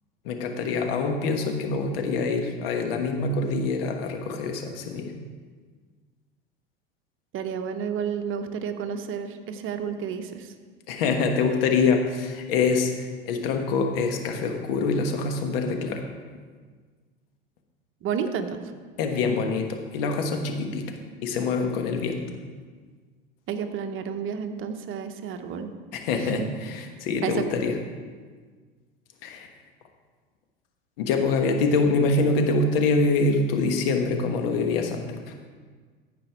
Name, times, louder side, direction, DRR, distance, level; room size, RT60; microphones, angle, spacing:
voice 1, 0.2-5.1 10.9-16.0 19.0-20.9 21.2-22.2 25.9-27.8 29.2-29.5 31.0-35.0, left 4 dB, 70° left, 4 dB, 1.3 m, -25 dB
voice 2, 7.3-10.5 18.0-18.6 23.5-25.7 27.2-27.4, right 7 dB, 45° right, 7 dB, 0.9 m, -31 dB
14.5 x 5.2 x 4.6 m, 1.5 s
hypercardioid pair, 80°, 30 cm